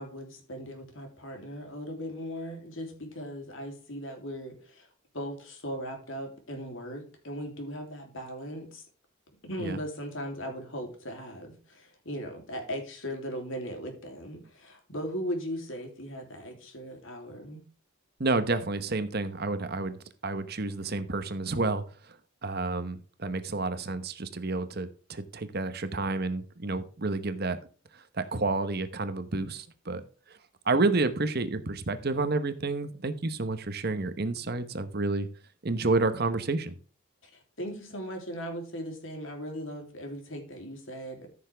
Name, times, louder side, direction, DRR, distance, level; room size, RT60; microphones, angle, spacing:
voice 1, 0.0-4.9 5.1-8.8 9.4-17.6 37.2-41.3, equal, 65° left, 3 dB, 3.2 m, -38 dB
voice 2, 18.2-22.2 22.4-27.6 27.9-30.0 30.3-30.4 30.6-35.3 35.6-36.8, right 3 dB, 45° right, 11 dB, 1.0 m, -30 dB
14.0 x 6.8 x 3.5 m, 0.39 s
head